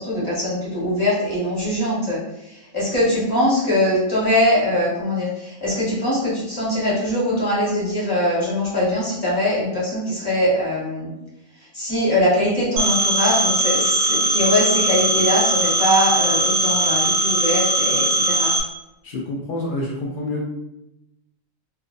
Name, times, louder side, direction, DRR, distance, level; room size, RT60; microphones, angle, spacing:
voice 1, 0.0-2.2 2.5-11.1 11.7-18.5, left 1 dB, 20° left, -8 dB, 1.0 m, -22 dB
Telephone, 12.8-18.6, right 2 dB, 85° right, 0.4 m, -20 dB
voice 2, 19.0-20.4, left 1 dB, 70° left, -2 dB, 0.5 m, -27 dB
2.5 x 2.3 x 2.5 m, 0.89 s
omnidirectional pair, 1.4 m